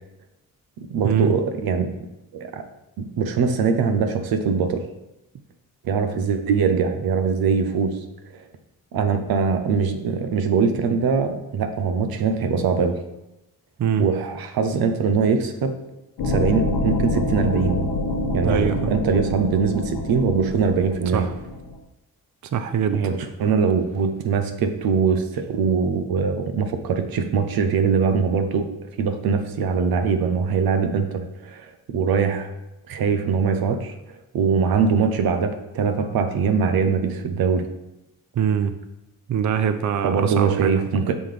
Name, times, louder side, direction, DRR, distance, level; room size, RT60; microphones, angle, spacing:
voice 1, 0.8-1.9 2.3-2.6 3.0-4.9 5.8-8.0 8.9-13.0 14.0-15.7 16.2-17.8 18.3-21.3 22.9-28.7 29.0-32.5 32.9-33.9 34.3-37.7 40.0-41.2, right 5 dB, 85° right, 8 dB, 0.7 m, -22 dB
sound 1, 16.2-21.8, left 2 dB, 85° left, 1.0 m, -26 dB
voice 2, 18.4-18.9 21.1-21.3 22.5-23.0 38.4-38.7 39.3-41.0, right 8 dB, 55° right, 9 dB, 0.5 m, -23 dB
6.1 x 5.5 x 3.3 m, 0.93 s
cardioid pair, 75°, 35 cm